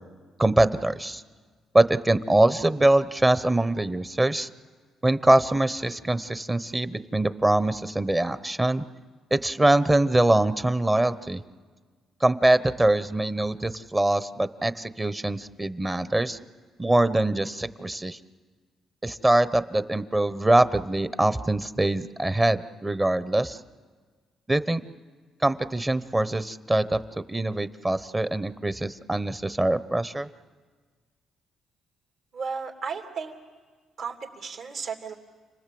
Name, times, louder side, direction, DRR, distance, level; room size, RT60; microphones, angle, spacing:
voice 1, 0.4-1.2 1.7-4.5 5.0-8.8 9.3-11.4 12.2-16.4 16.8-18.2 19.0-23.6 24.5-24.8 25.4-27.0 27.3-30.3, right 1 dB, 15° right, 13 dB, 0.9 m, -23 dB
voice 2, 32.3-33.3 34.0-35.1, right 5 dB, 70° right, 2 dB, 3.0 m, -34 dB
29.5 x 19.5 x 7.8 m, 1.5 s
cardioid pair, 90°, 0 cm